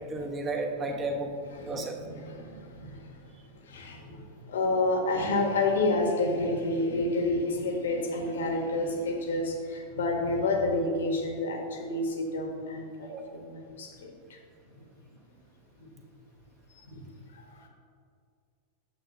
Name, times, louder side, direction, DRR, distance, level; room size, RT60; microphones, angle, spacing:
voice 1, 0.0-1.3 1.6-2.0 13.1-13.2, right 2 dB, 20° right, 2 dB, 1.0 m, -32 dB
voice 2, 1.6-3.2 3.5-14.4 15.8-15.9 16.9-17.0 17.3-17.7, left 2 dB, 65° left, 3 dB, 1.1 m, -30 dB
8.8 x 7.6 x 2.7 m, 2.3 s
figure-of-eight pair, 90°, 0 cm